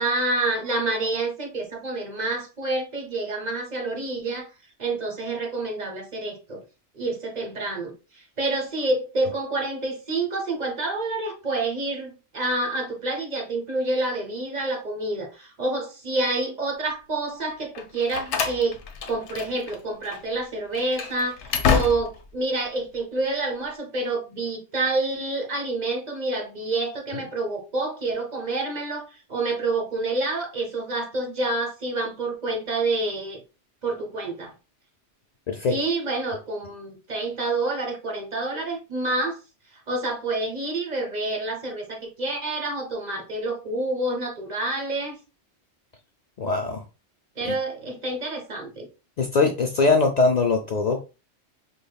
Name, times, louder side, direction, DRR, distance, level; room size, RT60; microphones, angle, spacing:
voice 1, 0.0-4.5 4.8-6.6 6.9-7.9 8.4-18.8 19.1-29.0 29.3-33.4 33.8-34.5 35.7-39.4 39.9-45.2 47.4-48.9, right 2 dB, 45° right, 0.8 m, -28 dB
Slam, 17.7-19.8 20.0-20.2 20.7-22.3, left 6 dB, 75° left, 0.9 m, -27 dB
voice 2, 46.4-46.8 47.4-47.5 49.2-51.0, left 3 dB, 60° left, 0.4 m, -21 dB
5.1 x 2.2 x 2.2 m
omnidirectional pair, 1.2 m